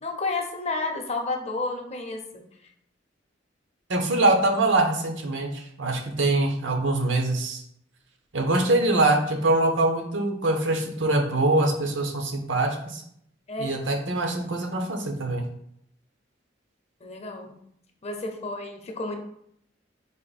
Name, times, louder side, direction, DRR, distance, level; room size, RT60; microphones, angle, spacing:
voice 1, 0.0-2.4 13.5-13.8 17.0-17.5 18.0-19.2, left 3 dB, 35° left, 4 dB, 0.6 m, -31 dB
voice 2, 3.9-7.6 8.3-13.0 13.6-15.4, right 2 dB, 85° right, 3 dB, 0.9 m, -23 dB
4.2 x 3.0 x 4.0 m, 0.70 s
head